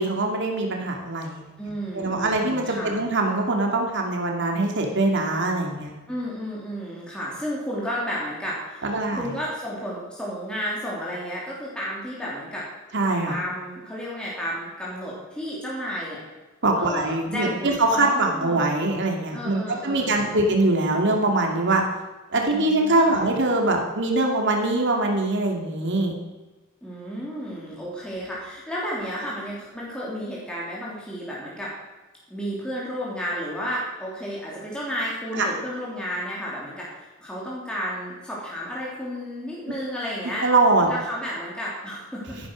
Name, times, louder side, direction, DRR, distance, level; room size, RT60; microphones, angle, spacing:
voice 1, 0.0-1.5 1.9-5.9 8.8-9.3 12.9-13.3 16.6-21.8 22.3-26.1 35.3-35.5 40.4-40.9, right 2 dB, 55° right, 1 dB, 2.6 m, -23 dB
voice 2, 1.6-3.0 6.1-12.7 13.3-16.2 16.8-18.6 19.3-20.4 22.5-23.2 26.8-31.7 32.3-40.4 40.9-42.4, equal, 5° left, -6 dB, 3.2 m, -32 dB
13.5 x 11.0 x 6.4 m, 1.2 s
head